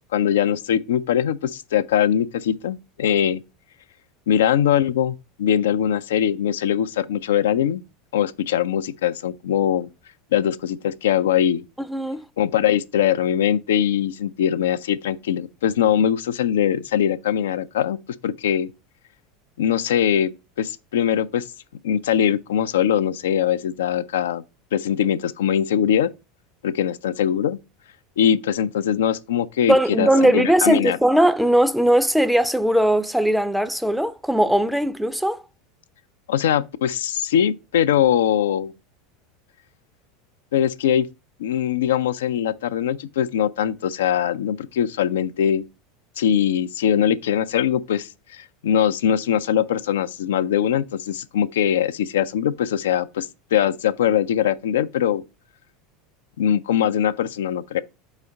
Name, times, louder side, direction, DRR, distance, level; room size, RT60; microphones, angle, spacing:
voice 1, 0.1-3.4 4.3-7.8 8.1-9.9 10.3-11.7 12.4-18.0 18.2-18.7 19.6-20.3 20.6-21.5 21.8-24.4 24.7-26.1 26.6-27.6 28.2-31.0 36.3-38.7 40.5-41.1 41.4-45.6 46.2-55.2 56.4-57.8, left 9 dB, 70° left, 0.3 m, -21 dB
voice 2, 11.9-12.2 29.7-35.4, right 1 dB, ahead, 0.5 m, -19 dB
4.8 x 4.0 x 5.3 m
figure-of-eight pair, 80°, 0 cm